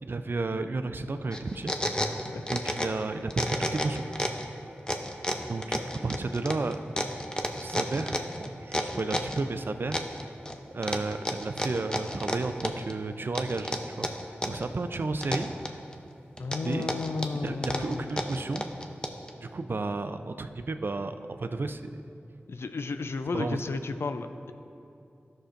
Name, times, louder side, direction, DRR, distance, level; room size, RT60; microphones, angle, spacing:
voice 1, 0.0-1.7 2.5-4.0 5.5-6.8 7.6-10.0 10.7-14.1 14.5-15.5 16.5-16.9 17.4-18.6 19.4-22.0 23.3-23.6, right 3 dB, 55° right, 9 dB, 0.4 m, -32 dB
sound 1, 1.3-3.0 3.3-4.5 4.9-9.4 9.9-10.5 10.8-12.9 13.3-14.7 14.9-15.9 16.4-19.3, left 1 dB, 20° left, 0.7 m, -31 dB
voice 2, 16.4-18.4 22.5-24.5, left 4 dB, 70° left, 9 dB, 0.4 m, -33 dB
12.5 x 6.5 x 2.5 m, 2.8 s
cardioid pair, 40°, 4 cm